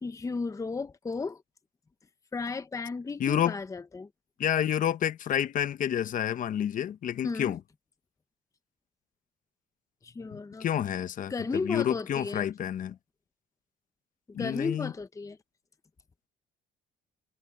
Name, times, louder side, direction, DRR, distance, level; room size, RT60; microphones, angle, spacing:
voice 1, 0.0-1.4 2.3-4.1 7.2-7.6 10.0-10.7 11.3-12.4 14.4-15.4, left 4 dB, 20° left, 0.9 m, -34 dB
voice 2, 3.2-3.5 4.4-7.6 10.3-11.3 11.6-13.0 14.3-14.9, left 10 dB, 50° left, 1.1 m, -29 dB
cardioid pair, 110°, 17 cm